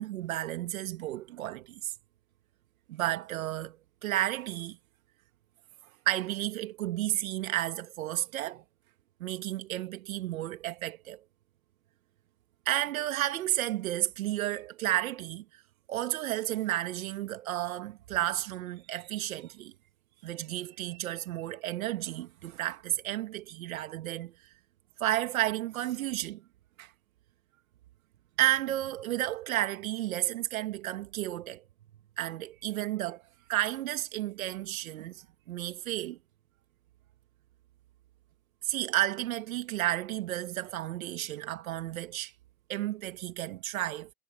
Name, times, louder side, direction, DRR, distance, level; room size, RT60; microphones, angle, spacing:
voice 1, 0.0-1.9 2.9-3.8 4.0-4.8 6.1-8.6 9.2-11.2 12.7-15.6 15.9-19.7 20.2-24.3 25.0-26.4 26.8-26.9 28.4-31.6 32.2-33.2 33.5-36.2 38.6-42.3 42.7-44.1, right 14 dB, 60° right, 2.2 m, -32 dB
hypercardioid pair, 130°, 47 cm